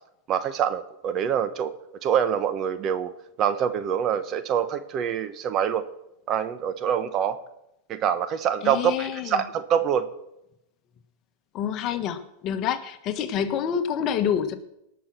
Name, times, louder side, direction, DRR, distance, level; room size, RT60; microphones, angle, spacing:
voice 1, 0.3-1.7 2.0-3.1 3.4-5.8 6.3-7.4 7.9-10.1, right 8 dB, 40° right, 12 dB, 1.1 m, -25 dB
voice 2, 8.6-9.4 11.5-14.6, left 8 dB, 45° left, 9 dB, 1.3 m, -27 dB
18.5 x 6.1 x 6.1 m, 0.85 s
hypercardioid pair, 115°, 0 cm